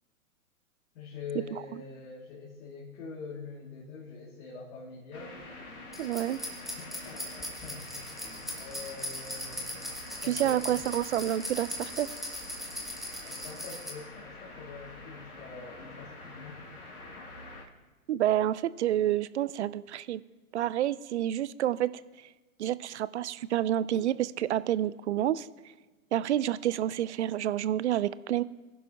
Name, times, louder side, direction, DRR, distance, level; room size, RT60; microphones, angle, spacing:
voice 1, 0.9-5.4 6.7-7.9 8.5-9.7 10.2-10.8 13.2-16.6, left 4 dB, 50° left, -5 dB, 2.5 m, -44 dB
sound 1, 5.1-17.6, left 2 dB, 85° left, 2.4 m, -46 dB
sound 2, 5.9-13.9, equal, ahead, 1.3 m, -39 dB
voice 2, 6.0-6.4 10.3-12.1 18.1-20.2 20.5-21.9 22.6-25.5 26.1-28.4, right 12 dB, 50° right, 18 dB, 0.5 m, -28 dB
22.0 x 11.0 x 2.9 m, 1.2 s
hypercardioid pair, 120°, 44 cm